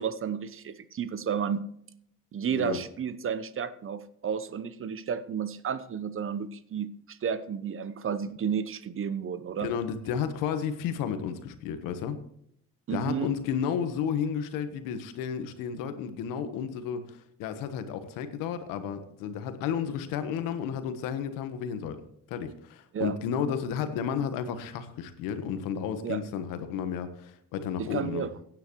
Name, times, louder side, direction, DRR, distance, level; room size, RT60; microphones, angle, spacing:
voice 1, 0.0-1.7 2.3-9.7 12.9-13.3 22.9-23.1 26.0-26.2 27.8-28.3, right 7 dB, 40° right, 14 dB, 0.9 m, -32 dB
voice 2, 9.6-12.2 12.9-22.0 22.3-28.3, left 7 dB, 85° left, 9 dB, 1.3 m, -32 dB
16.0 x 9.5 x 3.1 m, 0.70 s
supercardioid pair, 85°, 33 cm